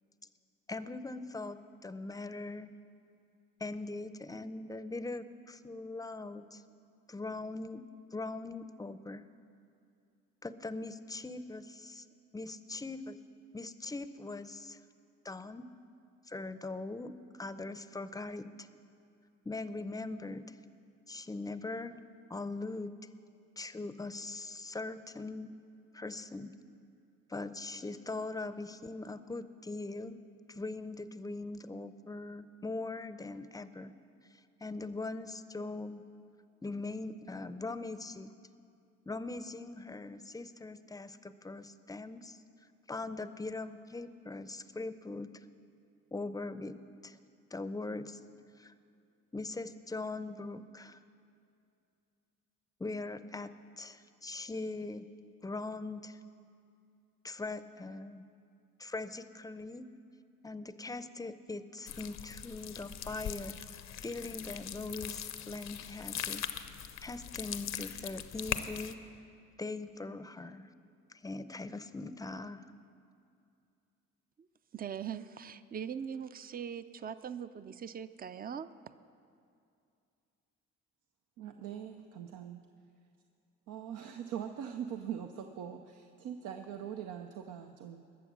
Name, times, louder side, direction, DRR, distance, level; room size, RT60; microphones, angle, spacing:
voice 1, 0.7-2.7 3.6-6.6 7.1-7.8 8.1-9.2 10.4-12.1 12.3-13.2 13.5-14.8 15.2-15.7 16.3-18.7 19.4-20.6 21.1-22.0 22.3-22.9 23.6-25.5 25.9-26.5 27.3-30.2 30.5-33.9 34.6-36.0 36.6-38.3 39.1-42.4 42.9-45.3 46.1-47.2 47.5-48.2 48.6-48.7 49.3-51.0 52.8-55.1 55.4-56.2 57.2-58.3 58.8-59.9 60.4-63.6 64.0-66.4 67.0-69.0 69.6-70.7 71.1-72.6, left 3 dB, 10° left, 13 dB, 0.6 m, -41 dB
sound 1, 61.9-68.9, left 9 dB, 65° left, 0.7 m, -41 dB
voice 2, 74.7-78.7, right 8 dB, 30° right, 13 dB, 0.5 m, -41 dB
voice 3, 81.4-82.6 83.7-88.0, right 9 dB, 75° right, 6 dB, 0.7 m, -42 dB
20.5 x 7.1 x 6.1 m, 2.5 s
supercardioid pair, 65°, 30 cm